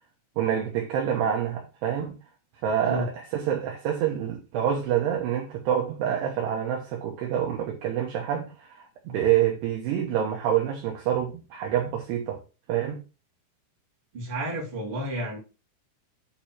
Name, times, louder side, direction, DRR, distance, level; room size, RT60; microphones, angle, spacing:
voice 1, 0.4-2.2 2.6-12.4 12.7-13.0, right 9 dB, 75° right, 2.6 m, -27 dB
voice 2, 14.1-15.4, right 1 dB, 30° right, 2.8 m, -31 dB
9.1 x 4.2 x 4.5 m
omnidirectional pair, 5.9 m